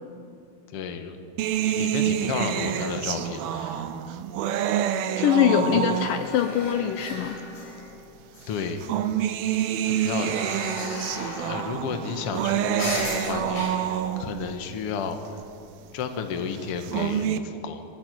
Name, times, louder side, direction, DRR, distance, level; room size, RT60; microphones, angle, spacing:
voice 1, 0.7-1.2 1.6-3.8 5.7-6.0 8.5-8.9 9.8-10.4 11.4-15.4 15.9-17.8, left 6 dB, 50° left, 6 dB, 1.9 m, -32 dB
sound 1, 1.4-6.5 7.4-7.5 8.6-14.5 16.6-17.4, right 10 dB, 85° right, 2.8 m, -27 dB
voice 2, 5.2-7.4, left 10 dB, 75° left, 8 dB, 2.3 m, -23 dB
sound 2, 5.9-8.1 8.3-9.1 9.5-15.5 16.1-16.2, left 2 dB, 90° left, 6.9 m, -38 dB
21.5 x 17.5 x 9.4 m, 2.6 s
omnidirectional pair, 4.3 m